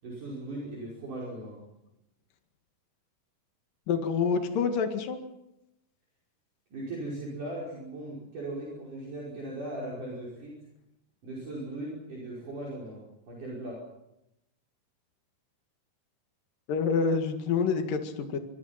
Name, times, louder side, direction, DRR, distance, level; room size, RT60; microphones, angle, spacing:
voice 1, 0.0-1.6 6.7-10.6 11.2-13.8, right 1 dB, 50° right, -4 dB, 6.9 m, -38 dB
voice 2, 3.9-5.2 16.7-18.4, left 5 dB, 60° left, 6 dB, 3.5 m, -27 dB
25.5 x 24.5 x 5.9 m, 0.85 s
omnidirectional pair, 4.6 m